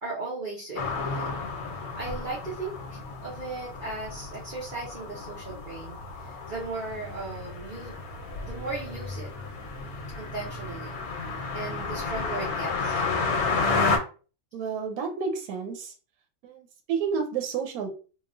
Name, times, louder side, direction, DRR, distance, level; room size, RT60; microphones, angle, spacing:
voice 1, 0.0-1.3 1.7-8.0 8.4-9.3 10.2-11.0 11.5-13.0, right 3 dB, 40° right, -6 dB, 0.8 m, -37 dB
sound 1, 0.8-14.0, left 4 dB, 90° left, 1.1 m, -32 dB
voice 2, 14.5-15.9 16.4-17.9, right 6 dB, 85° right, 4 dB, 1.1 m, -30 dB
3.0 x 2.3 x 2.4 m, 0.36 s
omnidirectional pair, 1.5 m